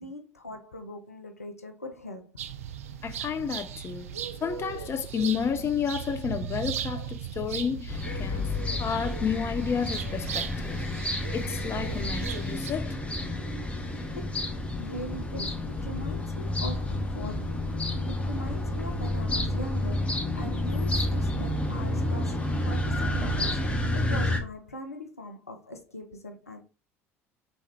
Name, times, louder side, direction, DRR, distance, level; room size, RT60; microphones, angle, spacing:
voice 1, 0.0-2.4 6.9-7.1 14.2-14.3 14.8-17.5 18.2-26.6, left 1 dB, 90° left, 0.6 m, -41 dB
sound 1, 2.4-12.7, right 9 dB, 75° right, 0.4 m, -37 dB
voice 2, 3.0-8.5 8.8-10.8 11.3-13.0, left 7 dB, 35° left, 0.6 m, -31 dB
sound 2, 7.9-24.4, left 1 dB, 15° left, 1.2 m, -30 dB
3.5 x 3.2 x 4.3 m
figure-of-eight pair, 60°, 8 cm